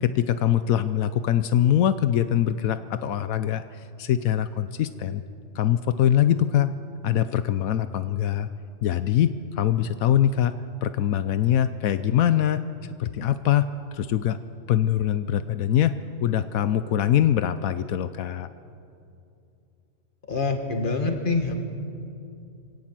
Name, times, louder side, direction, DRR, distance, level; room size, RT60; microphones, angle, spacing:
voice 1, 0.0-3.6 4.0-5.2 5.5-6.7 7.0-8.5 8.8-10.5 10.8-12.6 13.0-14.4 14.7-15.9 16.2-18.5, left 10 dB, 85° left, 12 dB, 1.1 m, -23 dB
voice 2, 20.3-21.6, left 3 dB, 40° left, 4 dB, 2.1 m, -25 dB
24.5 x 17.5 x 7.6 m, 2.6 s
omnidirectional pair, 1.4 m